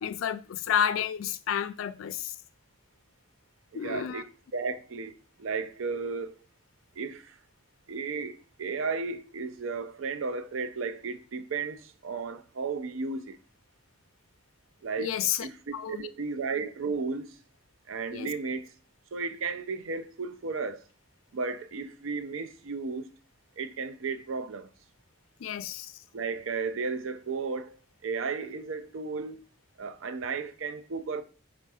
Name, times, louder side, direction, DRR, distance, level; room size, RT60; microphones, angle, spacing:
voice 1, 0.0-2.3 3.7-4.2 15.0-15.5 15.7-16.1 18.1-18.3 25.4-25.9, left 9 dB, 80° left, 0.4 m, -30 dB
voice 2, 3.7-6.3 7.0-7.4 7.9-13.4 14.8-15.1 15.4-17.4 17.9-18.7 19.1-20.8 21.3-23.1 23.6-24.7 26.1-29.4 29.8-31.2, right 4 dB, 70° right, 0.5 m, -34 dB
4.4 x 2.5 x 4.8 m
head